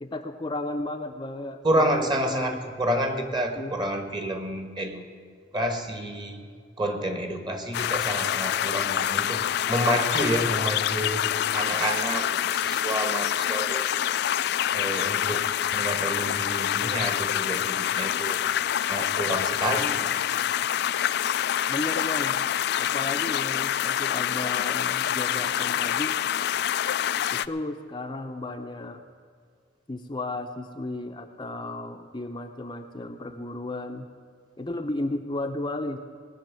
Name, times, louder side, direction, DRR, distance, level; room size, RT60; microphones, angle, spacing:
voice 1, 0.0-2.6 3.6-3.7 21.7-22.4 22.8-26.2 27.3-29.0 29.9-34.1 34.6-36.0, left 2 dB, 25° left, 4 dB, 0.6 m, -34 dB
voice 2, 1.6-5.0 5.5-6.4 6.8-9.4 9.7-11.3 11.5-13.8 14.7-18.4 18.9-20.2, right 1 dB, 25° right, 6 dB, 1.5 m, -29 dB
sound 1, 7.7-27.5, left 10 dB, 60° left, 0.3 m, -26 dB
19.0 x 6.4 x 9.0 m, 2.1 s
head